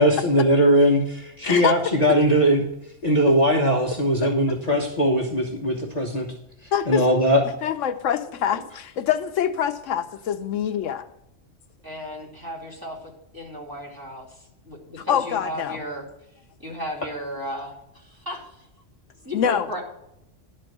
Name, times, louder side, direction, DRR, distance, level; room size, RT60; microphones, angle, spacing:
voice 1, 0.0-2.6 3.0-6.3 6.9-7.4, equal, 35° left, -2 dB, 1.1 m, -20 dB
voice 2, 1.4-1.8 4.2-4.3 6.7-7.1 7.6-11.1 15.1-15.8 19.3-19.7, left 9 dB, 75° left, 9 dB, 0.9 m, -25 dB
voice 3, 11.8-16.1 16.6-18.7 19.2-19.8, equal, 15° right, -4 dB, 2.7 m, -35 dB
12.0 x 4.4 x 7.7 m, 0.83 s
omnidirectional pair, 1.3 m